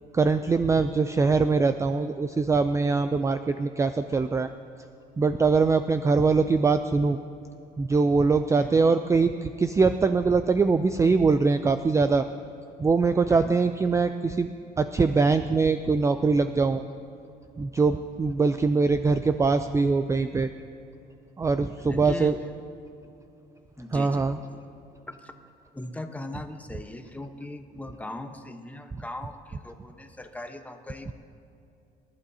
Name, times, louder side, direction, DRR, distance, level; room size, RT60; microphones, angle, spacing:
voice 1, 0.1-4.5 5.2-7.2 7.8-12.3 12.8-14.5 14.8-16.8 17.6-20.5 21.4-22.3 23.9-24.4, right 4 dB, 15° right, 10 dB, 0.4 m, -22 dB
voice 2, 13.3-13.6 21.8-22.4 23.8-24.3 25.1-25.3 25.7-31.1, left 1 dB, 10° left, 6 dB, 1.0 m, -39 dB
27.5 x 11.5 x 2.8 m, 2.6 s
cardioid pair, 110°, 17 cm